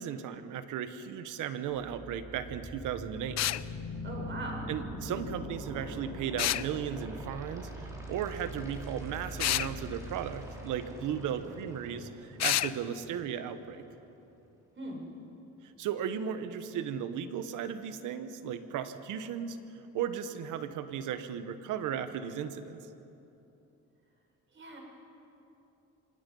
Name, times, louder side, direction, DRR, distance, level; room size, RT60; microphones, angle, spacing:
voice 1, 0.0-3.4 4.7-13.8 15.6-19.6 19.9-22.8, right 8 dB, 90° right, 10 dB, 1.2 m, -36 dB
sound 1, 1.7-13.7, equal, 10° right, 4.3 m, -43 dB
sound 2, 3.4-3.6 6.4-6.7 9.4-9.7 12.4-12.7, left 13 dB, 60° left, 0.6 m, -28 dB
voice 2, 4.0-4.7 14.8-15.0 24.5-24.8, right 2 dB, 40° right, 0 dB, 5.8 m, -40 dB
25.5 x 19.5 x 5.5 m, 2.9 s
cardioid pair, 90°, 30 cm